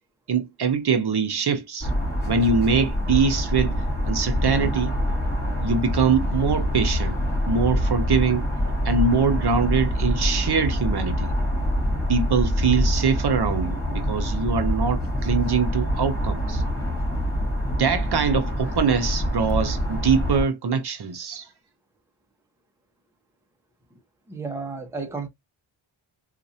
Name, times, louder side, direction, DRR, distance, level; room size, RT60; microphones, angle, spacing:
voice 1, 0.3-1.9 2.2-3.7 4.0-4.9 5.6-7.2 7.5-8.5 8.8-11.3 12.1-16.6 17.8-21.5, right 5 dB, 50° right, 0.8 m, -23 dB
sound 1, 1.8-20.4, equal, 20° left, 2.6 m, -25 dB
voice 2, 24.3-25.3, right 4 dB, 5° right, 0.7 m, -32 dB
4.0 x 2.4 x 2.7 m
wide cardioid pair, 155°, 49 cm